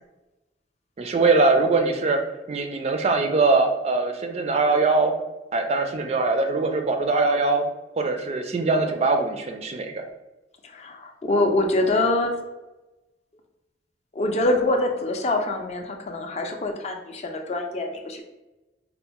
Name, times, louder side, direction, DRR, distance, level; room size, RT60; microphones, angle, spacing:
voice 1, 1.0-2.2 2.5-5.1 5.5-7.6 8.0-10.0, right 3 dB, 35° right, 5 dB, 0.3 m, -22 dB
voice 2, 10.6-12.3 14.1-18.2, left 2 dB, 35° left, 3 dB, 0.4 m, -24 dB
4.2 x 2.0 x 2.9 m, 1.0 s
head